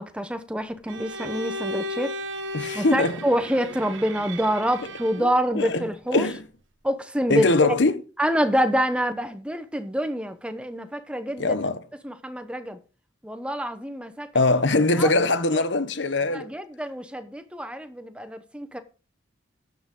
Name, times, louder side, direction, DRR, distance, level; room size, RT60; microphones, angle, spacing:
voice 1, 0.0-2.2 2.7-6.3 6.8-7.5 8.2-11.6 12.0-12.8 13.2-14.3 15.0-15.1 15.5-15.6 16.3-18.8, equal, 5° right, 0.9 m, -26 dB
Bowed string instrument, 0.9-5.4, equal, 85° right, 1.1 m, -35 dB
voice 2, 2.5-3.2 5.2-5.3 5.5-5.8 6.1-6.4 7.3-8.0 11.4-11.8 14.3-16.5, left 2 dB, 75° left, 1.0 m, -22 dB
13.5 x 9.0 x 3.8 m
head